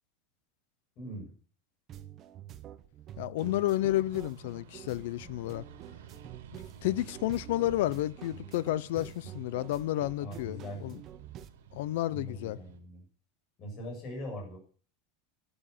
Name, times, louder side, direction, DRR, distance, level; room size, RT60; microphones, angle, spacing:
voice 1, 1.0-1.3 10.2-10.9 12.1-13.0 13.6-14.6, equal, 30° left, 7.5 m, -41 dB
sound 1, 1.9-11.5, right 11 dB, 25° right, 1.0 m, -48 dB
voice 2, 3.2-5.6 6.5-11.0 11.7-12.6, left 15 dB, 60° left, 0.8 m, -31 dB
sound 2, 3.4-12.8, right 8 dB, 90° right, 3.4 m, -53 dB
12.5 x 11.5 x 7.0 m
supercardioid pair, 175°, 0 cm